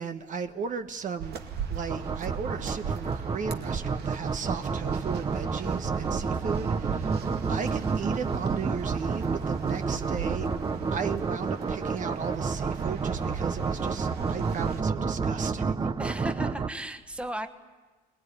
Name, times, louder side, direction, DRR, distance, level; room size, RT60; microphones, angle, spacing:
voice 1, 0.0-10.5 10.9-15.9, right 6 dB, 50° right, 8 dB, 1.2 m, -36 dB
sound 1, 1.2-14.8, right 7 dB, 70° right, 2.3 m, -40 dB
sound 2, 1.9-16.7, right 5 dB, 25° right, 0.9 m, -30 dB
voice 2, 16.0-17.5, equal, 5° right, 7 dB, 1.5 m, -35 dB
22.5 x 20.0 x 10.0 m, 1.3 s
cardioid pair, 110°, 17 cm